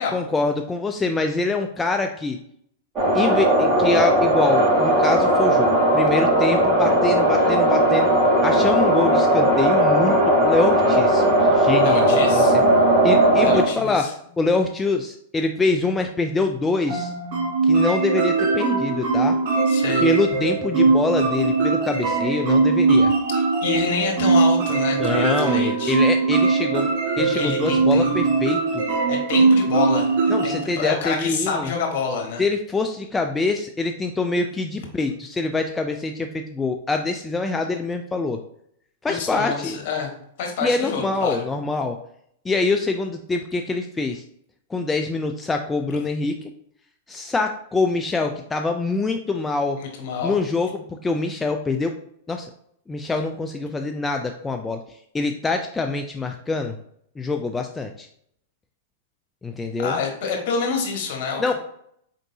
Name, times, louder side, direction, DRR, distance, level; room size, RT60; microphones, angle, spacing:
voice 1, 0.1-2.4 3.1-5.7 5.9-8.1 8.4-11.2 11.5-12.6 13.0-14.1 14.4-17.1 17.6-19.4 20.0-23.1 25.0-26.9 27.2-28.8 30.3-31.7 32.4-38.4 39.0-39.8 40.6-42.0 42.4-44.2 44.7-46.5 47.1-49.8 50.2-51.9 52.3-52.5 52.9-54.8 55.1-56.8 57.2-58.1 59.4-59.9 61.4-61.5, left 3 dB, 15° left, 5 dB, 0.4 m, -25 dB
sound 1, 3.0-13.6, right 1 dB, 25° right, 1.8 m, -17 dB
voice 2, 11.8-12.5 13.4-14.1 19.7-20.1 23.6-26.0 27.3-28.1 29.1-32.4 39.1-40.1 40.4-41.4 49.8-50.4 59.8-61.5, left 5 dB, 55° left, 2 dB, 1.5 m, -27 dB
sound 2, 16.9-30.6, right 4 dB, 55° right, 1.2 m, -20 dB
4.6 x 3.8 x 2.7 m, 0.70 s
hypercardioid pair, 110°, 0 cm